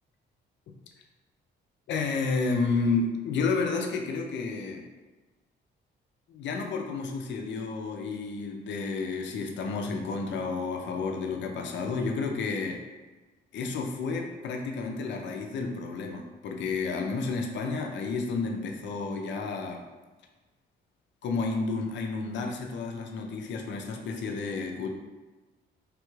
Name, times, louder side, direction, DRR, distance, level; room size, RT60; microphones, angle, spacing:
voice 1, 1.9-4.9 6.3-12.8 13.5-19.8 21.2-24.9, left 4 dB, 65° left, 2 dB, 0.5 m, -31 dB
3.3 x 2.3 x 3.1 m, 1.2 s
cardioid pair, 90°, 20 cm